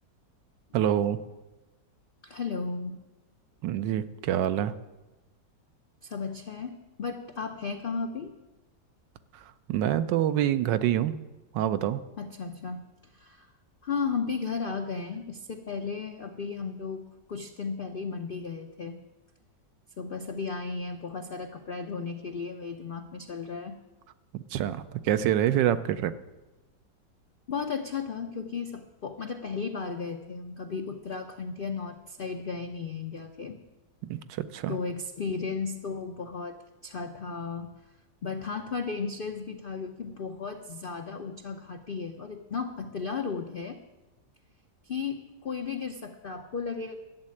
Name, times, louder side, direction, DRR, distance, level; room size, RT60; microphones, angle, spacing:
voice 1, 0.7-1.2 3.6-4.7 9.7-11.2 11.5-12.0 24.3-26.1 34.1-34.8, right 11 dB, 80° right, 12 dB, 1.3 m, -26 dB
voice 2, 2.2-3.0 6.0-8.3 12.2-12.8 13.1-13.5 13.8-19.0 20.0-23.8 27.5-33.6 34.7-37.7 38.2-43.8 44.8-47.0, left 5 dB, 70° left, 5 dB, 0.5 m, -35 dB
12.0 x 7.5 x 9.7 m, 1.1 s
omnidirectional pair, 1.9 m